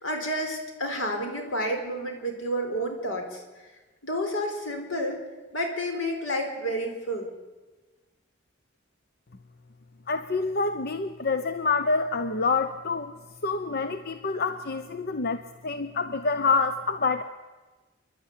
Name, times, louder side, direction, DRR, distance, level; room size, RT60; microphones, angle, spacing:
voice 1, 0.0-3.4 4.0-5.2 5.5-7.3, equal, 85° left, 3 dB, 4.7 m, -30 dB
voice 2, 10.1-13.1 13.4-17.2, left 4 dB, 55° left, 10 dB, 0.8 m, -27 dB
28.0 x 11.5 x 9.8 m, 1.3 s
head